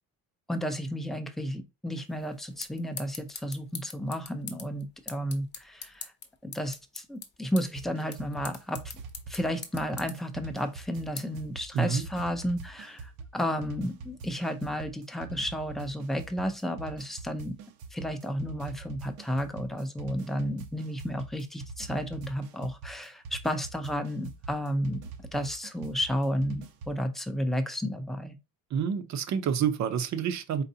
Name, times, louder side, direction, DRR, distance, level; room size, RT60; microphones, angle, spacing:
voice 1, 0.5-6.1 6.4-8.9 9.3-17.6 17.9-25.0 25.3-28.4, equal, ahead, 0.5 m, -32 dB
sound 1, 2.0-12.4, left 6 dB, 30° left, 0.9 m, -45 dB
sound 2, 7.7-27.0, right 4 dB, 85° right, 0.9 m, -44 dB
voice 2, 11.7-12.1 28.7-30.6, right 7 dB, 50° right, 0.7 m, -28 dB
4.4 x 4.0 x 2.7 m
cardioid pair, 150°, 35 cm